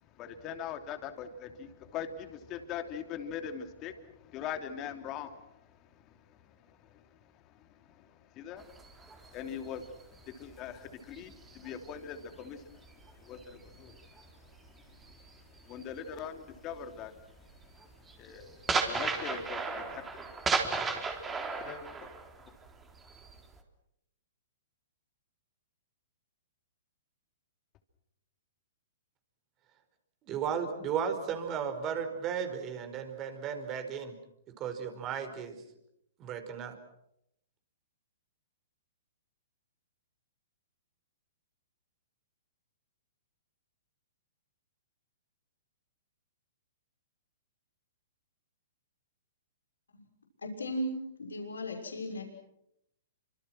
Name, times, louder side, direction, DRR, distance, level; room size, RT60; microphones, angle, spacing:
voice 1, 0.0-20.2 20.5-20.8 21.6-22.1 22.4-22.5, left 8 dB, 30° left, 3.1 m, -43 dB
sound 1, 8.6-12.4 12.8-16.2 16.5-16.8 17.2-23.6, right 4 dB, 15° right, 3.9 m, -35 dB
voice 2, 30.3-34.1 34.6-35.6 36.2-36.7, right 7 dB, 30° right, 5.0 m, -35 dB
voice 3, 50.4-50.9 51.2-52.2, equal, 90° left, 6.2 m, -36 dB
29.5 x 26.0 x 6.2 m
hypercardioid pair, 125°, 0 cm